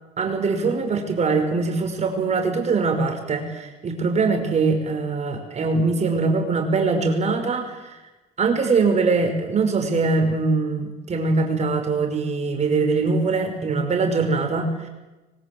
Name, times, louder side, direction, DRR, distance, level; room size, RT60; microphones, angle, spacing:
voice 1, 0.2-8.0 8.4-14.9, right 4 dB, 40° right, 5 dB, 5.5 m, -22 dB
24.5 x 22.5 x 7.9 m, 1.1 s
cardioid pair, 110°, 17 cm